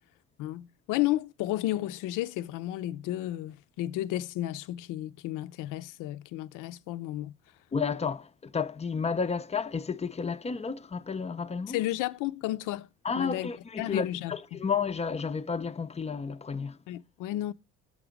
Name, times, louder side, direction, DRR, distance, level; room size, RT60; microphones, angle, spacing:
voice 1, 0.4-7.3 11.7-12.9 13.2-13.5 13.8-14.6 16.9-17.5, left 15 dB, 75° left, 0.5 m, -32 dB
voice 2, 7.7-11.8 13.0-16.8, left 5 dB, 20° left, 0.4 m, -31 dB
6.5 x 4.9 x 5.1 m
supercardioid pair, 80°, 32 cm